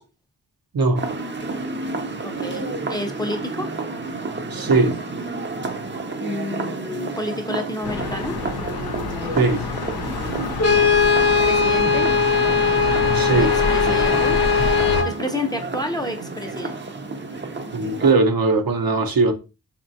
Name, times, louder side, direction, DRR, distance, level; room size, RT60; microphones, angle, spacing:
voice 1, 0.7-1.0 4.5-4.9 9.4-9.6 13.1-13.5 17.7-19.3, right 3 dB, 65° right, 0.8 m, -19 dB
sound 1, 1.0-18.1, right 3 dB, 30° right, 0.6 m, -31 dB
voice 2, 2.2-3.7 6.2-8.4 11.4-12.1 13.3-14.4 15.0-16.8, left 2 dB, 10° left, 0.6 m, -30 dB
sound 2, 7.8-15.0, left 5 dB, 80° left, 0.6 m, -27 dB
Brass instrument, 10.6-15.2, left 5 dB, 40° left, 0.8 m, -19 dB
4.3 x 3.0 x 2.7 m
wide cardioid pair, 70°, 37 cm